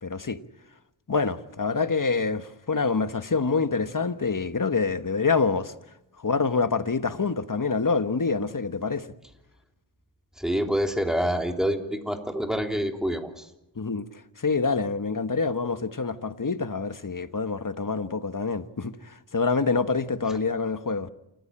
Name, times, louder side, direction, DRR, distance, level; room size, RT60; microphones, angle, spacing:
voice 1, 0.0-0.4 1.1-5.7 6.2-9.1 13.8-14.1 14.4-21.1, left 4 dB, 45° left, 1.4 m, -26 dB
voice 2, 10.4-13.4, equal, ahead, 3.3 m, -27 dB
28.5 x 15.0 x 8.8 m
wide cardioid pair, 55°, 46 cm